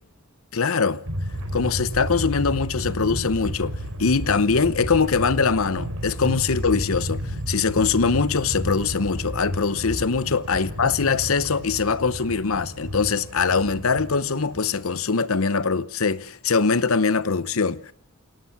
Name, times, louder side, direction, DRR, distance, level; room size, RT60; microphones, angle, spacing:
voice 1, 0.5-1.0 1.5-17.9, left 5 dB, 70° left, 0.9 m, -22 dB
sound 1, 1.1-15.0, equal, 80° right, 4.9 m, -32 dB
27.5 x 17.5 x 7.2 m
head